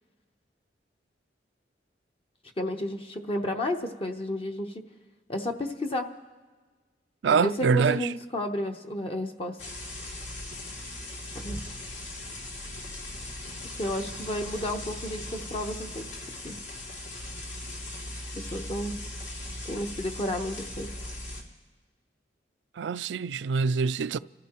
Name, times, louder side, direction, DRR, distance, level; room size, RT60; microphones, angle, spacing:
voice 1, 2.6-4.8 5.3-6.1 7.3-9.6 11.3-11.6 13.8-16.1 16.4-16.6 18.3-19.0 19.6-20.9, left 1 dB, 30° left, 0.8 m, -32 dB
voice 2, 7.2-8.1 22.8-24.2, right 5 dB, 75° right, 0.4 m, -25 dB
sound 1, 9.6-21.4, left 1 dB, 80° left, 2.5 m, -39 dB
29.5 x 14.5 x 3.0 m
head